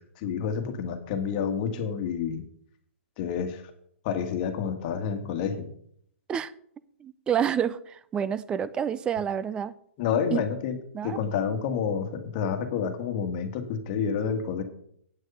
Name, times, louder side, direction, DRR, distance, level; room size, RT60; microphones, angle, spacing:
voice 1, 0.2-2.4 3.2-3.6 4.0-5.7 10.0-10.8 11.0-14.6, left 7 dB, 35° left, 1.6 m, -29 dB
voice 2, 7.0-9.7 10.3-10.4 10.9-11.2, right 8 dB, 15° right, 0.4 m, -28 dB
9.0 x 6.5 x 6.8 m
hypercardioid pair, 150°, 7 cm